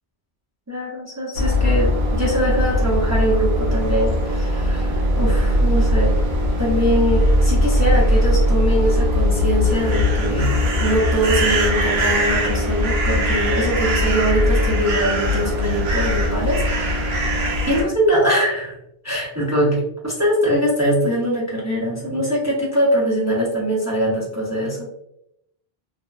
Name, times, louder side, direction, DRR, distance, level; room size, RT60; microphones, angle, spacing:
voice 1, 0.7-6.1 6.6-17.2 17.7-18.8 19.0-24.9, equal, 20° right, -6 dB, 0.4 m, -22 dB
sound 1, 1.3-17.8, equal, 80° right, 0.9 m, -19 dB
2.7 x 2.1 x 2.3 m, 0.77 s
omnidirectional pair, 1.0 m